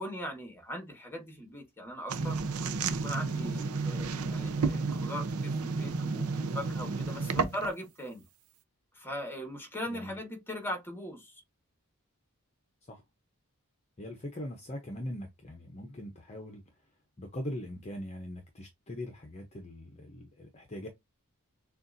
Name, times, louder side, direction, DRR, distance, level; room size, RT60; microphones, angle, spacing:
voice 1, 0.0-2.4 2.9-8.2 9.0-11.3, equal, 10° left, 1.5 m, -40 dB
sound 1, 2.1-7.8, right 4 dB, 90° right, 0.6 m, -32 dB
voice 2, 9.9-10.2 12.9-13.0 14.0-16.6 17.2-20.9, left 1 dB, 30° left, 0.8 m, -41 dB
6.7 x 2.5 x 2.6 m
head